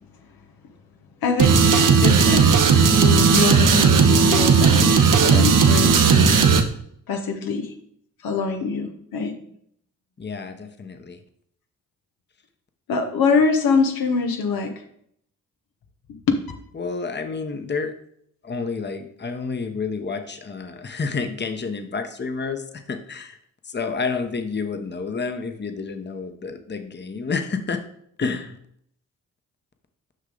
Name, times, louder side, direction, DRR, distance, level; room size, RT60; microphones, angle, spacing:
voice 1, 1.2-6.4 7.1-7.7 8.2-9.4 12.9-14.7 16.3-16.4, left 4 dB, 85° left, 4 dB, 1.0 m, -24 dB
sound 1, 1.4-6.6, right 5 dB, 65° right, 0.9 m, -15 dB
voice 2, 10.2-11.2 16.7-17.9 18.4-23.4 23.7-27.8 28.2-28.6, left 4 dB, 30° left, 7 dB, 0.9 m, -29 dB
6.4 x 5.5 x 3.9 m, 0.67 s
supercardioid pair, 50°, 35 cm